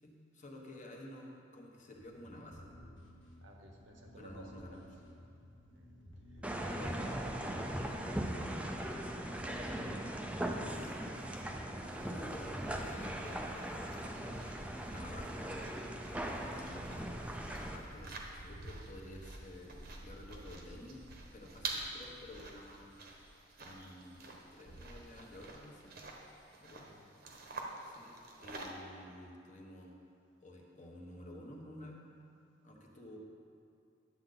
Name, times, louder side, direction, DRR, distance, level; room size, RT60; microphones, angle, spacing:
voice 1, 0.0-2.7 4.2-4.9 6.8-6.9 10.7-11.5 12.0-14.5 14.9-15.5 16.4-21.0 21.3-22.9 23.6-25.9 26.6-26.9 27.8-30.0 30.4-32.0 32.6-33.2, left 1 dB, 40° left, -1 dB, 1.2 m, -52 dB
sound 1, 2.0-9.0, left 1 dB, 90° left, 1.7 m, -56 dB
voice 2, 3.4-5.2 5.7-5.9 6.3-10.2 26.7-27.0, right 1 dB, 75° right, 2 dB, 1.1 m, -56 dB
sound 2, 6.4-17.8, right 1 dB, 5° right, 0.5 m, -39 dB
sound 3, 11.8-28.7, right 2 dB, 55° right, 1.0 m, -48 dB
10.5 x 7.7 x 3.9 m, 2.5 s
head